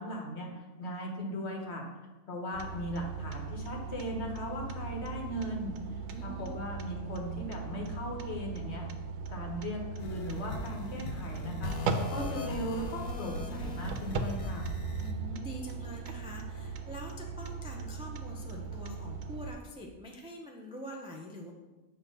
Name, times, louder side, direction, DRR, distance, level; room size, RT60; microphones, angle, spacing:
voice 1, 0.0-1.8 2.3-5.7 6.2-8.8 9.3-11.7 12.1-14.7, equal, 55° left, 1 dB, 1.3 m, -38 dB
sound 1, 2.5-19.5, right 5 dB, 80° right, 1.0 m, -39 dB
voice 2, 6.1-6.6 15.0-21.5, equal, 10° right, 0 dB, 0.3 m, -45 dB
sound 2, 10.0-15.1, left 2 dB, 80° left, 1.0 m, -39 dB
7.6 x 2.8 x 5.3 m, 1.2 s
omnidirectional pair, 1.4 m